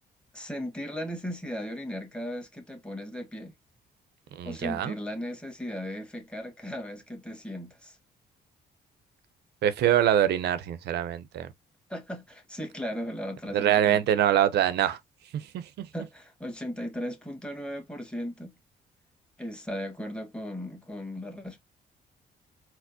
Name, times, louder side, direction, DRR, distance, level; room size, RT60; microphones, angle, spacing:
voice 1, 0.3-3.5 4.4-8.0 11.9-14.0 15.9-18.6 19.4-21.6, equal, 5° left, 1.4 m, -37 dB
voice 2, 4.3-4.9 9.6-11.5 13.5-15.0 15.3-15.8, right 10 dB, 75° right, 0.6 m, -24 dB
4.3 x 2.1 x 2.7 m
cardioid pair, 90°, 17 cm